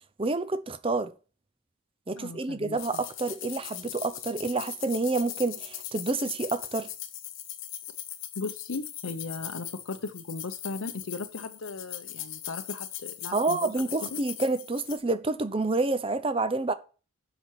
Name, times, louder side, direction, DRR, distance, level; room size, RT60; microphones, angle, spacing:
voice 1, 0.2-1.1 2.1-6.9 13.3-16.7, right 3 dB, 25° right, 0.7 m, -28 dB
voice 2, 2.2-3.0 8.4-14.2, left 3 dB, 85° left, 0.7 m, -37 dB
sound 1, 2.8-15.0, left 12 dB, 70° left, 1.1 m, -40 dB
7.3 x 6.1 x 7.4 m
head